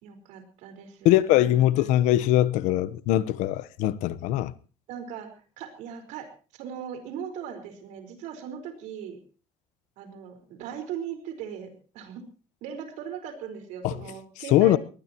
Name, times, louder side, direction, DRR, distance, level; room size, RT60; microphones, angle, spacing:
voice 1, 0.0-2.0 4.9-9.2 10.0-12.2 12.6-14.8, right 8 dB, 70° right, 4.7 m, -39 dB
voice 2, 1.0-4.5 13.8-13.9 14.5-14.8, left 14 dB, 75° left, 1.0 m, -21 dB
22.0 x 19.5 x 3.0 m
cardioid pair, 180°, 13 cm